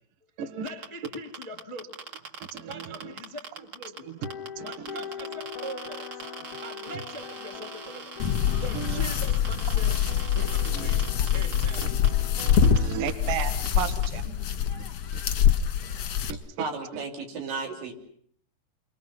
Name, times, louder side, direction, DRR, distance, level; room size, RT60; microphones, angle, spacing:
voice 1, 0.6-2.0 2.7-4.1 4.6-6.2 6.6-8.2 8.6-10.0 10.3-12.0 12.5-12.6 14.7-14.9, right 1 dB, 15° right, 5 dB, 1.3 m, -42 dB
sound 1, 0.7-12.1 12.4-12.8 13.1-13.2 13.4-14.1, right 6 dB, 40° right, 2.0 m, -41 dB
voice 2, 2.5-3.1 4.0-4.2 4.6-4.7 8.7-9.1 10.7-10.9 12.2-14.4 16.3-17.0, right 9 dB, 60° right, 9 dB, 2.7 m, -34 dB
sound 2, 4.2-12.9, left 8 dB, 90° left, 1.2 m, -42 dB
sound 3, 8.2-16.3, left 8 dB, 65° left, 1.6 m, -25 dB
voice 3, 16.6-17.9, right 4 dB, 85° right, 1 dB, 5.7 m, -34 dB
29.5 x 24.5 x 5.9 m, 0.62 s
omnidirectional pair, 5.1 m